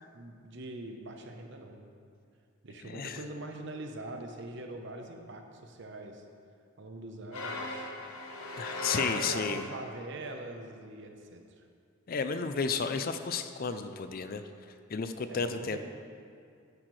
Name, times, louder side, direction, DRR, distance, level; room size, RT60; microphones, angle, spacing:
voice 1, 0.1-1.9 2.6-6.2 6.8-7.9 9.2-11.7 15.3-15.8, right 2 dB, 55° right, 4 dB, 0.9 m, -43 dB
voice 2, 2.8-3.2 8.6-9.6 12.1-14.4 14.9-15.8, left 5 dB, 45° left, 9 dB, 0.4 m, -32 dB
sound 1, 7.3-10.0, left 2 dB, 85° left, 1.2 m, -37 dB
11.0 x 9.9 x 3.2 m, 2.4 s
head